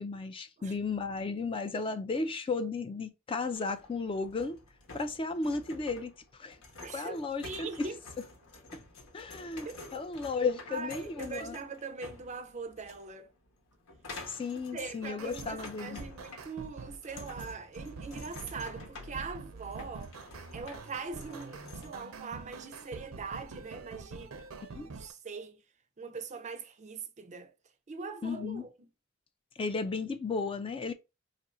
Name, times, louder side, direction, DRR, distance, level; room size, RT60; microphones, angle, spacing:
voice 1, 0.0-4.6 4.9-6.6 6.9-7.9 8.7-8.8 9.1-11.6 14.3-16.0 24.6-24.9 28.2-28.7 29.6-30.9, left 4 dB, 25° left, 0.3 m, -34 dB
sound 1, 3.5-22.0, left 3 dB, 85° left, 1.1 m, -50 dB
voice 2, 6.8-7.2 7.4-8.0 9.7-9.9 10.7-13.3 14.7-20.1 20.5-24.3 24.9-25.6 26.0-27.5 27.9-28.9, right 4 dB, 35° right, 0.5 m, -42 dB
sound 2, 15.0-25.1, right 4 dB, 90° right, 0.6 m, -46 dB
2.6 x 2.5 x 4.1 m
head